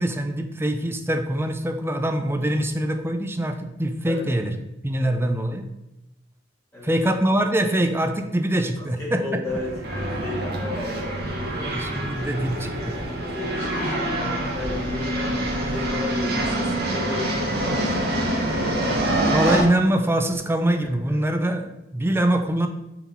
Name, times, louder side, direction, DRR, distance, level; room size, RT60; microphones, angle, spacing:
voice 1, 0.0-4.5 4.8-5.7 6.8-9.2 11.5-13.0 19.3-22.7, right 1 dB, 10° right, 6 dB, 0.5 m, -23 dB
voice 2, 8.8-11.8 13.1-18.7 21.1-21.2, left 2 dB, 15° left, -7 dB, 1.8 m, -34 dB
sound 1, 9.5-19.6, right 1 dB, 55° right, 1.3 m, -26 dB
5.7 x 4.0 x 4.3 m, 0.89 s
head